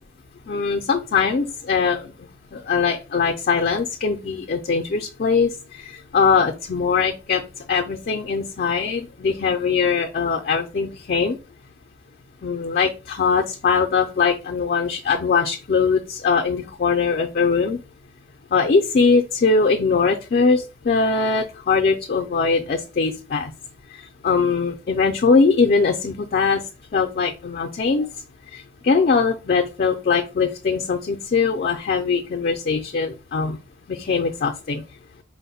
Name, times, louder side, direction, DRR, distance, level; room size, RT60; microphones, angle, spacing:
voice 1, 0.5-2.1 2.5-5.5 5.8-7.4 7.7-11.4 12.4-17.8 18.5-23.5 24.2-26.6 26.9-28.1 28.5-33.6 33.9-34.8, left 5 dB, 50° left, 2 dB, 0.4 m, -21 dB
4.5 x 2.1 x 4.1 m, 0.31 s
head